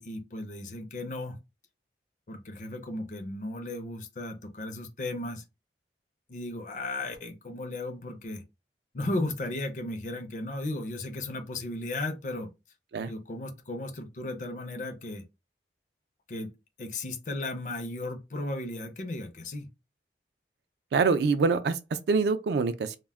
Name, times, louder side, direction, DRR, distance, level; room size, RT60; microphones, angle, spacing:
voice 1, 0.0-1.4 2.3-5.4 6.3-8.4 8.9-12.5 13.1-15.2 16.3-16.5 16.8-19.7, left 2 dB, 45° left, 0.4 m, -35 dB
voice 2, 20.9-23.0, right 4 dB, 65° right, 0.3 m, -25 dB
2.1 x 2.1 x 3.4 m
head